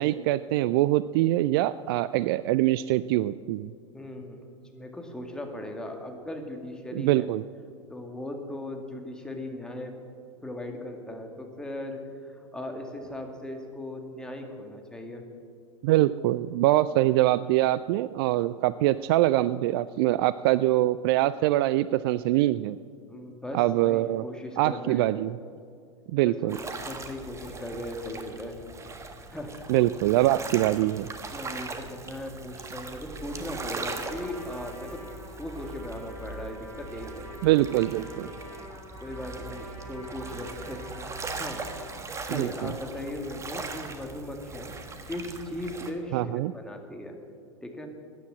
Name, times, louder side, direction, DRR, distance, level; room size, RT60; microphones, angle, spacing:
voice 1, 0.0-3.7 6.9-7.4 15.8-22.8 23.5-24.2 24.6-25.4 26.1-26.6 29.7-31.1 37.4-38.3 42.3-42.7 46.1-46.5, right 15 dB, 45° right, 16 dB, 0.4 m, -24 dB
voice 2, 3.9-4.4 4.7-7.3 7.9-10.0 10.4-15.2 23.1-25.1 26.2-28.6 29.3-29.6 31.3-35.1 35.4-37.3 38.0-38.4 39.0-41.1 41.4-44.7 45.0-47.2 47.6-47.9, left 1 dB, 5° left, 3 dB, 2.0 m, -38 dB
sound 1, 26.5-45.9, right 3 dB, 15° right, 1.3 m, -40 dB
Trumpet, 33.3-41.8, right 1 dB, 85° right, 4.1 m, -46 dB
13.5 x 9.9 x 7.4 m, 2.2 s
figure-of-eight pair, 90°, 17 cm